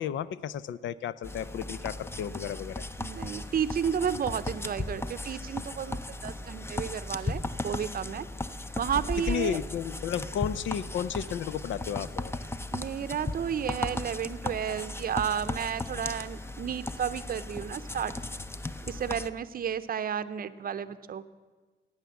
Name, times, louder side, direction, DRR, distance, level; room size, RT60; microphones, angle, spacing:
voice 1, 0.0-2.8 9.3-12.3, left 9 dB, 70° left, 17 dB, 0.5 m, -33 dB
sound 1, 1.2-19.3, left 2 dB, 10° left, 0.6 m, -36 dB
voice 2, 3.0-8.3 8.8-9.6 12.7-18.1 18.9-21.2, right 8 dB, 45° right, 13 dB, 0.7 m, -32 dB
15.5 x 8.9 x 7.0 m, 1.4 s
cardioid pair, 90°, 20 cm